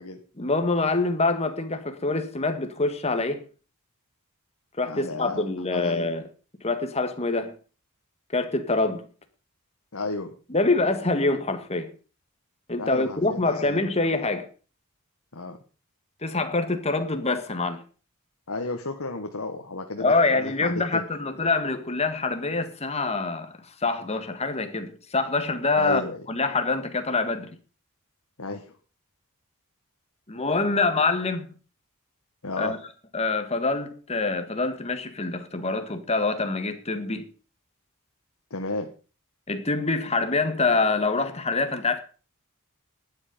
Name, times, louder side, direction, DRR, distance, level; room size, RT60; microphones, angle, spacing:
voice 1, 0.4-3.4 4.8-6.2 6.6-7.5 8.3-9.0 10.5-11.9 12.7-14.5 16.2-17.8 20.0-26.0 26.3-27.5 30.3-31.5 32.6-32.8 33.1-37.3 39.5-42.0, left 3 dB, 30° left, 1.6 m, -25 dB
voice 2, 4.8-5.4 5.7-6.1 9.9-10.3 12.8-13.9 15.3-15.6 18.5-21.0 25.8-26.2 28.4-28.8 32.4-32.8 38.5-38.9, left 3 dB, 70° left, 1.4 m, -33 dB
12.0 x 9.6 x 5.2 m
head